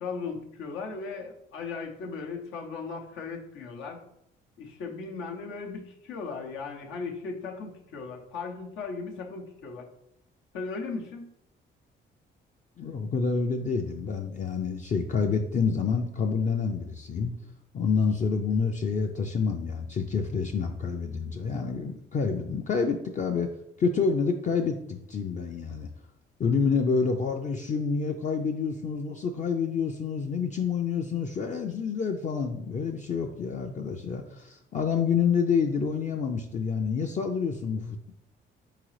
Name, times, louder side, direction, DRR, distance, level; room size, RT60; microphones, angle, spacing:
voice 1, 0.0-4.0 4.6-9.9 10.5-11.3, left 4 dB, 90° left, 0 dB, 0.8 m, -37 dB
voice 2, 12.8-17.3 17.7-25.9 26.4-38.1, left 5 dB, 40° left, 3 dB, 0.4 m, -28 dB
3.8 x 3.7 x 3.2 m, 0.77 s
cardioid pair, 90°, 20 cm